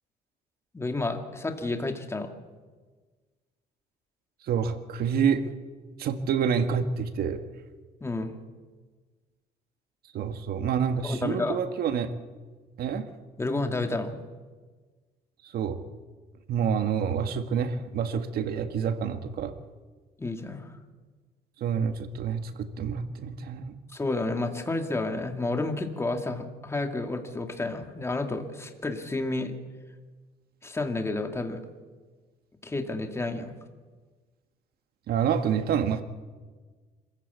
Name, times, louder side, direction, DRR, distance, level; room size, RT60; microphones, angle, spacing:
voice 1, 0.7-2.3 8.0-8.3 11.0-11.6 13.4-14.2 20.2-20.8 23.9-29.5 30.6-31.6 32.6-33.6, left 2 dB, 15° left, 5 dB, 2.2 m, -30 dB
voice 2, 4.4-5.5 6.0-7.4 10.1-12.1 12.8-13.1 15.4-15.8 16.5-19.6 21.6-23.8 35.1-36.0, right 7 dB, 65° right, 8 dB, 1.8 m, -28 dB
26.0 x 15.5 x 8.4 m, 1.4 s
cardioid pair, 110°, 17 cm